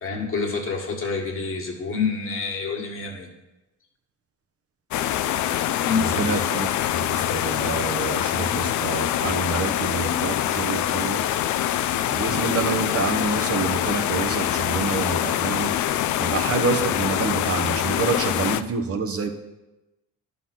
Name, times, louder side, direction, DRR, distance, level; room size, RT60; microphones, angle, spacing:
voice 1, 0.0-3.3 5.8-6.6, left 4 dB, 45° left, 0 dB, 1.7 m, -27 dB
sound 1, 4.9-18.6, left 12 dB, 70° left, 0.5 m, -24 dB
voice 2, 6.1-11.2 12.1-15.7 16.2-19.3, right 5 dB, 50° right, 5 dB, 1.0 m, -27 dB
11.0 x 3.9 x 5.9 m, 1.0 s
cardioid pair, 90°, 30 cm